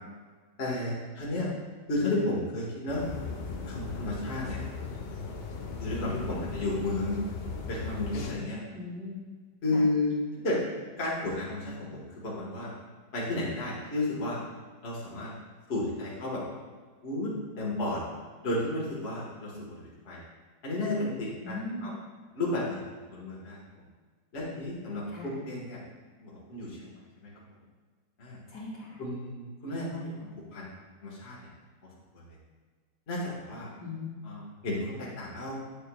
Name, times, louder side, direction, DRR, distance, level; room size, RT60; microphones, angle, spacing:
voice 1, 0.6-1.5 1.9-3.0 3.7-4.6 5.8-7.2 7.7-8.6 9.6-10.1 10.4-10.6 11.0-12.7 13.1-14.4 14.8-15.3 15.7-16.4 17.0-18.0 18.4-20.2 20.6-21.9 22.3-22.8 23.1-23.6 24.3-25.8 26.2-27.3 28.2-28.4 29.0-30.7 31.0-31.4 32.1-32.3 33.1-33.7 34.2-35.5, left 2 dB, 35° left, -6 dB, 1.6 m, -32 dB
sound 1, 2.9-8.3, left 4 dB, 90° left, 0.5 m, -38 dB
voice 2, 8.7-9.2 9.7-9.9 21.4-21.9 25.1-25.3 28.5-29.0 33.8-34.2, left 2 dB, 70° left, -5 dB, 2.7 m, -39 dB
8.8 x 6.8 x 2.3 m, 1.5 s
omnidirectional pair, 2.0 m